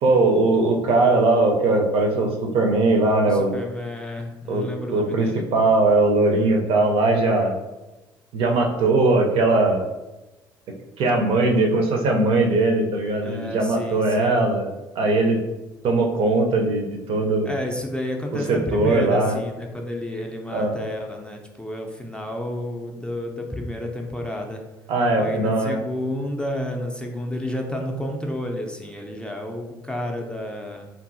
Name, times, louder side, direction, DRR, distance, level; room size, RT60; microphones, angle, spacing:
voice 1, 0.0-3.6 4.5-7.6 8.3-9.9 11.0-14.7 15.0-15.4 15.8-17.5 18.5-19.4 20.5-20.7 24.9-25.8, right 2 dB, 55° right, 2 dB, 0.5 m, -20 dB
voice 2, 3.3-5.5 13.2-14.5 17.4-24.6 25.2-30.9, left 1 dB, 10° left, 1 dB, 0.4 m, -31 dB
2.6 x 2.6 x 2.5 m, 1.1 s
figure-of-eight pair, 55°, 12 cm